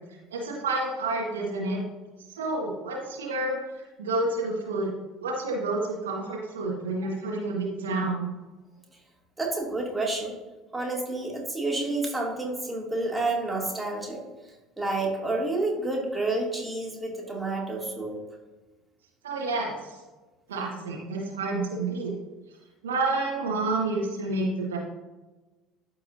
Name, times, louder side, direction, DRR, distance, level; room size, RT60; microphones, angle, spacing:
voice 1, 0.3-1.8 2.3-4.9 5.2-8.3 19.2-19.8 20.5-22.1 22.8-24.8, right 2 dB, 75° right, -1 dB, 1.3 m, -29 dB
voice 2, 9.4-10.3 10.7-14.2 14.8-18.2, right 2 dB, 10° right, -2 dB, 2.4 m, -29 dB
13.0 x 4.7 x 2.6 m, 1.2 s
figure-of-eight pair, 60°, 0 cm